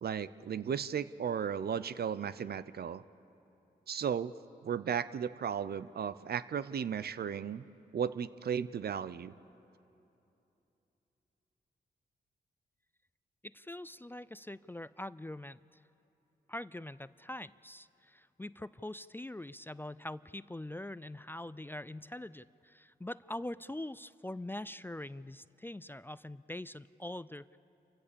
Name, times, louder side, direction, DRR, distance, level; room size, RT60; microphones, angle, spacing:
voice 1, 0.0-3.0 3.9-4.3 4.6-7.6 7.9-9.3, right 7 dB, 60° right, 16 dB, 0.6 m, -35 dB
voice 2, 13.4-15.6 16.5-27.6, left 1 dB, 10° left, 17 dB, 0.4 m, -43 dB
28.5 x 15.5 x 6.9 m, 2.9 s
supercardioid pair, 45°, 18 cm